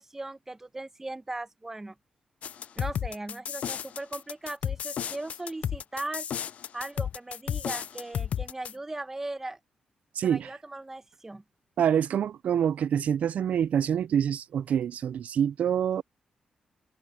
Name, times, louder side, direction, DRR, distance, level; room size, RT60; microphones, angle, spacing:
voice 1, 0.0-1.9 2.8-6.3 6.7-9.6 10.2-11.4, right 2 dB, 15° right, 0.9 m, -38 dB
sound 1, 2.4-8.7, left 9 dB, 70° left, 0.3 m, -33 dB
voice 2, 10.2-10.5 11.8-16.0, right 9 dB, 70° right, 0.4 m, -26 dB
cardioid pair, 105°, 2 cm